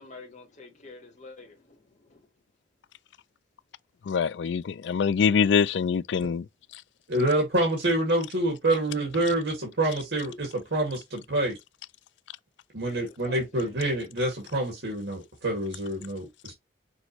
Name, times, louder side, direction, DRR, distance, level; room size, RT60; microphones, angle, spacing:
voice 1, 0.0-2.2 12.9-13.9, left 3 dB, 45° left, 1.3 m, -48 dB
voice 2, 4.1-6.5 6.7-6.8, left 6 dB, 75° left, 0.4 m, -24 dB
voice 3, 7.1-11.6 12.7-16.5, right 1 dB, 80° right, 2.0 m, -27 dB
6.2 x 2.6 x 3.0 m
head